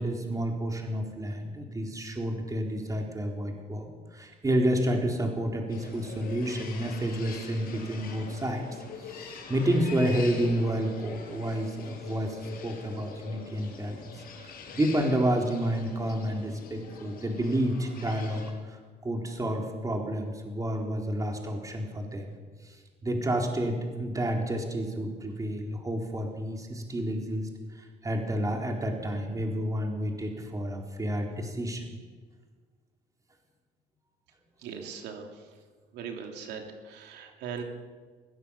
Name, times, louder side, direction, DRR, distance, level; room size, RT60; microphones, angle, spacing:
voice 1, 0.0-8.7 9.0-22.3 22.6-27.5 27.7-31.9, right 1 dB, 20° right, 2 dB, 4.0 m, -30 dB
sound 1, 5.7-18.5, left 5 dB, 60° left, 5.9 m, -44 dB
voice 2, 34.6-35.5 35.9-37.6, right 6 dB, 80° right, 3 dB, 2.9 m, -40 dB
22.0 x 16.5 x 7.2 m, 1.5 s
cardioid pair, 110°, 17 cm